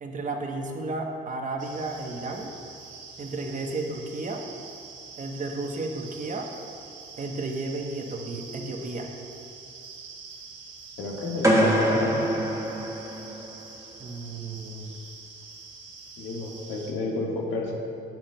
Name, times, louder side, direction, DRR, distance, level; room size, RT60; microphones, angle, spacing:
voice 1, 0.0-2.5 3.2-4.4 5.2-6.5 7.2-9.1 14.0-15.0, right 2 dB, 40° right, 3 dB, 0.9 m, -33 dB
sound 1, 1.6-16.9, right 4 dB, 75° right, 1.1 m, -45 dB
voice 2, 11.0-12.3 16.2-17.7, left 2 dB, 85° left, -1 dB, 1.4 m, -30 dB
sound 2, 11.4-13.6, right 1 dB, 15° right, 1.2 m, -24 dB
9.3 x 8.8 x 2.2 m, 2.5 s
cardioid pair, 90°, 20 cm